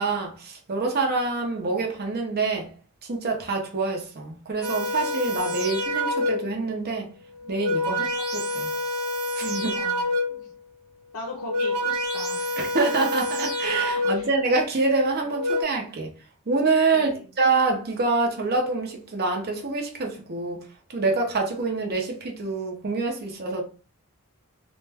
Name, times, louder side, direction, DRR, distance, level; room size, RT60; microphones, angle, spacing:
voice 1, 0.0-2.7 3.1-7.1 7.5-8.7 9.4-9.8 12.6-16.1 16.5-20.6 20.9-23.6, right 3 dB, 45° right, 0.7 m, -26 dB
sound 1, 4.6-6.6 7.4-10.5 11.3-14.4 15.2-15.6, left 1 dB, 80° right, 0.6 m, -27 dB
voice 2, 9.7-10.1 11.1-12.6 13.9-14.3 16.9-17.3, left 1 dB, 80° left, 0.6 m, -39 dB
2.5 x 2.2 x 3.3 m
head